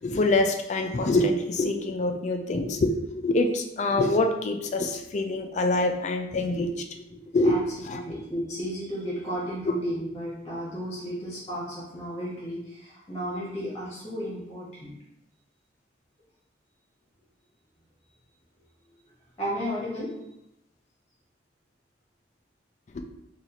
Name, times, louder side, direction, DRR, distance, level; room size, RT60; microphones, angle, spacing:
voice 1, 0.0-6.8 7.1-8.0 22.9-23.0, left 2 dB, 40° left, 5 dB, 0.3 m, -25 dB
voice 2, 7.9-14.9 19.4-20.1, equal, 20° left, -6 dB, 0.8 m, -33 dB
4.0 x 2.4 x 2.8 m, 0.87 s
head